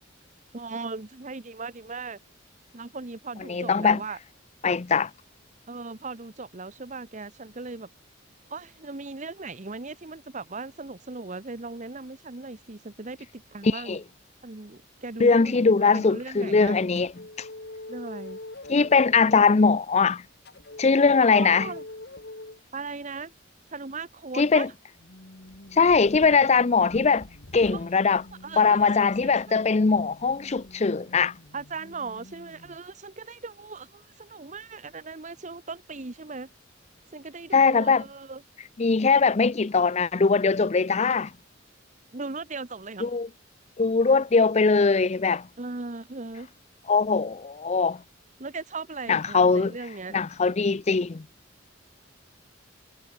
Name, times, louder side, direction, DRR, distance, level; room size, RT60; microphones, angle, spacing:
voice 1, 0.5-2.2 2.7-4.2 5.7-7.9 8.5-14.0 14.4-16.9 17.9-18.4 21.2-21.8 22.7-23.3 23.7-24.7 27.7-27.8 28.4-29.1 29.5-29.6 31.5-36.5 37.1-38.4 42.1-43.1 45.6-46.5 48.4-50.2, right 3 dB, 35° right, 1.1 m, -38 dB
voice 2, 3.5-4.0 4.6-5.1 13.6-14.0 15.2-17.1 18.7-20.2 20.8-21.7 24.3-24.7 25.7-27.3 27.5-28.2 28.6-31.3 37.5-38.0 38.8-41.3 43.0-43.3 43.8-45.5 46.9-48.0 49.1-49.7 50.1-51.3, left 4 dB, 35° left, 0.5 m, -21 dB
sound 1, 17.0-19.2 20.5-22.6 25.0-32.8, left 2 dB, 55° left, 2.0 m, -45 dB
sound 2, 25.4-30.8, left 2 dB, 80° left, 1.8 m, -51 dB
head